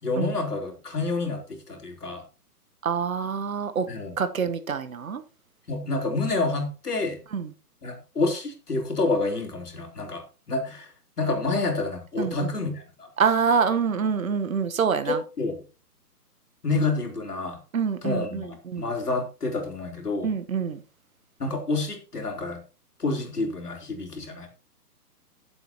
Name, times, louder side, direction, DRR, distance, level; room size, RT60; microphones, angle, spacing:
voice 1, 0.0-2.2 3.9-4.2 5.7-7.2 7.8-13.1 15.1-15.6 16.6-17.6 18.0-20.3 21.4-22.6 23.0-24.5, left 3 dB, 75° left, 3.6 m, -28 dB
voice 2, 2.8-3.9 4.2-5.2 7.3-7.5 12.2-12.3 13.2-15.2 17.7-18.9 20.2-20.8, right 6 dB, 60° right, 1.3 m, -26 dB
16.5 x 7.8 x 2.9 m
figure-of-eight pair, 130°, 47 cm